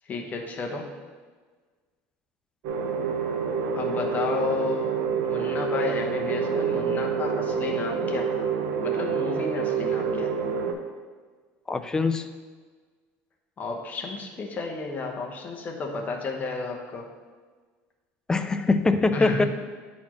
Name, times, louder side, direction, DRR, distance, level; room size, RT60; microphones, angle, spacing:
voice 1, 0.1-0.9 3.7-8.5 8.8-10.3 13.6-17.1 19.1-19.5, left 4 dB, 30° left, 2 dB, 0.9 m, -32 dB
sound 1, 2.6-10.7, right 6 dB, 75° right, 0.7 m, -27 dB
voice 2, 11.7-12.3 18.3-19.4, left 3 dB, 10° left, 9 dB, 0.3 m, -23 dB
9.4 x 4.2 x 3.0 m, 1.5 s
cardioid pair, 135°, 6 cm